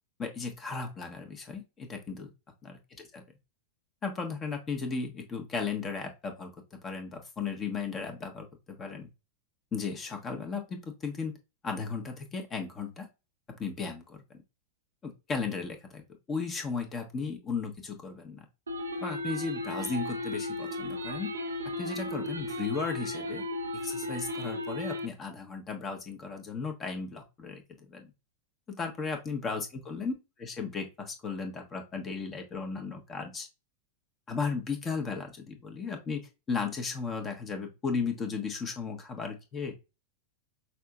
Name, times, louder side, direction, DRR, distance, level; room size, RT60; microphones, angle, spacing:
voice 1, 0.2-2.3 2.6-2.8 3.1-3.2 4.0-6.5 6.8-9.1 9.7-11.3 11.6-13.1 13.5-14.4 15.0-16.0 16.3-18.4 19.0-21.3 21.8-23.4 23.8-28.1 28.7-30.1 30.4-33.5 34.3-39.9, left 5 dB, 25° left, 4 dB, 1.2 m, -35 dB
sound 1, 18.7-25.1, left 1 dB, 75° right, 0.8 m, -35 dB
5.7 x 2.8 x 2.3 m, 0.26 s
figure-of-eight pair, 90°, 0 cm